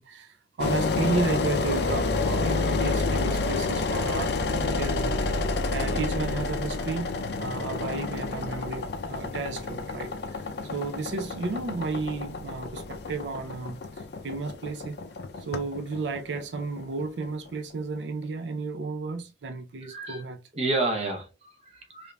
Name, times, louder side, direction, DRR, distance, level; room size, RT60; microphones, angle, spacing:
voice 1, 0.0-5.4 5.7-10.4 10.7-13.8 14.2-15.0 15.4-20.4, right 3 dB, 75° right, 0.5 m, -33 dB
Engine, 0.6-17.5, left 3 dB, 60° left, 0.4 m, -29 dB
voice 2, 19.8-20.2 20.5-22.1, right 2 dB, 35° right, 0.7 m, -30 dB
5.0 x 2.5 x 2.2 m
head